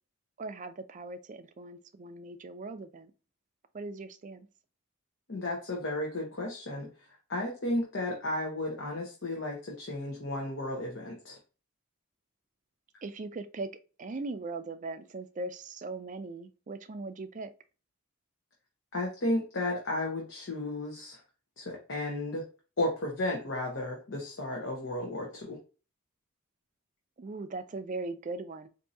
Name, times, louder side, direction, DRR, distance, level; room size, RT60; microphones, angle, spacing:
voice 1, 0.4-3.1 3.7-4.5 13.0-13.7 14.0-17.5 27.2-28.7, right 3 dB, 35° right, 0.4 m, -39 dB
voice 2, 5.3-6.9 7.3-11.4 18.9-21.2 21.6-22.4 22.8-25.6, left 1 dB, 60° left, 0.9 m, -33 dB
4.6 x 2.6 x 2.6 m
head